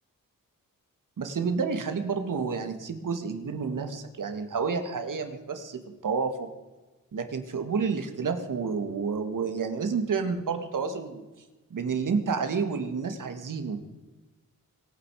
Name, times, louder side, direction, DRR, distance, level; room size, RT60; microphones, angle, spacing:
voice 1, 1.2-6.5 7.1-11.2 11.7-13.8, right 5 dB, 70° right, 7 dB, 2.2 m, -30 dB
24.5 x 9.3 x 5.0 m, 1.2 s
wide cardioid pair, 95°, 33 cm